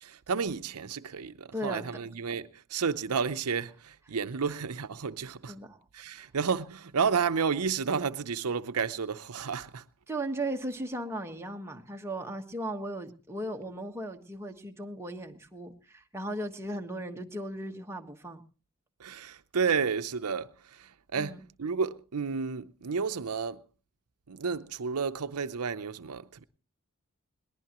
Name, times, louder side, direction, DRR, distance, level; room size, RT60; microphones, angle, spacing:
voice 1, 0.0-5.6 5.9-9.8 19.0-23.6 24.3-26.4, right 5 dB, 85° right, 0.7 m, -31 dB
voice 2, 1.5-1.8 5.5-5.8 6.2-6.3 10.1-18.4 21.1-21.4, right 1 dB, 10° right, 1.4 m, -37 dB
21.5 x 19.0 x 3.0 m
head